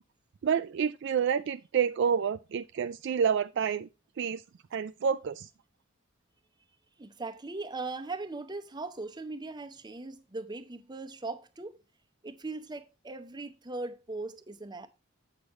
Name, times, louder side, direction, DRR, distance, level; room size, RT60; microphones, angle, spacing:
voice 1, 0.4-3.9 4.2-4.4 4.7-5.5, right 7 dB, 55° right, 0.3 m, -28 dB
voice 2, 7.0-11.8 12.2-14.9, right 3 dB, 20° right, 0.8 m, -39 dB
8.3 x 6.4 x 3.1 m
head